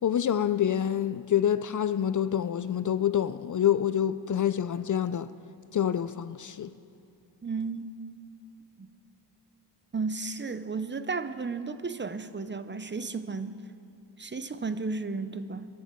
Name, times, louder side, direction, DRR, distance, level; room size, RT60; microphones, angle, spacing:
voice 1, 0.0-5.3 5.7-6.7, left 9 dB, 45° left, 0.4 m, -27 dB
voice 2, 7.4-7.9 8.8-8.9 9.9-13.6 14.2-15.7, right 4 dB, 25° right, 0.6 m, -33 dB
22.5 x 11.0 x 4.5 m
cardioid pair, 80°, 43 cm